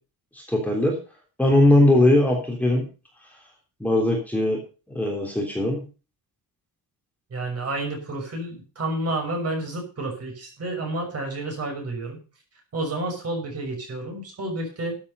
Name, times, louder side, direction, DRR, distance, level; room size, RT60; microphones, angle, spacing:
voice 1, 0.3-1.0 1.4-2.8 3.8-4.6 4.9-5.9, left 1 dB, 5° left, -1 dB, 3.5 m, -20 dB
voice 2, 7.3-12.2 12.7-15.0, right 2 dB, 40° right, 3 dB, 6.2 m, -30 dB
13.5 x 8.8 x 5.5 m, 0.34 s
cardioid pair, 165°, 38 cm